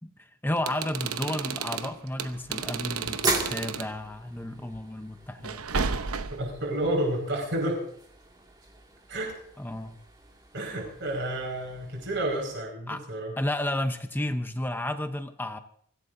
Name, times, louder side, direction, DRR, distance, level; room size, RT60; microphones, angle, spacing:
voice 1, 0.0-5.6 9.6-10.0 12.9-13.0 13.4-15.6, left 1 dB, 10° left, 7 dB, 0.8 m, -32 dB
sound 1, 0.6-3.9 5.4-6.6, right 5 dB, 90° right, 0.8 m, -32 dB
sound 2, 1.8-12.6, right 2 dB, 20° right, 2.2 m, -39 dB
voice 2, 6.3-7.8 9.1-9.3 10.5-13.3, right 1 dB, 55° right, 0 dB, 5.3 m, -30 dB
24.5 x 16.5 x 2.7 m, 0.64 s
head